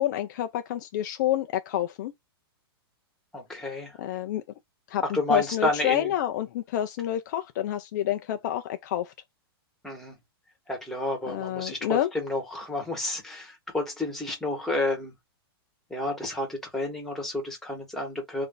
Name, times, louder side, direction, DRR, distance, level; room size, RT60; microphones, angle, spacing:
voice 1, 0.0-2.1 4.0-4.4 4.9-9.1 11.3-12.1, left 12 dB, 45° left, 0.5 m, -28 dB
voice 2, 3.3-4.0 5.0-6.1 9.8-10.2 10.7-15.1 15.9-18.5, left 2 dB, 5° left, 1.3 m, -30 dB
3.3 x 2.6 x 3.9 m
hypercardioid pair, 155°, 13 cm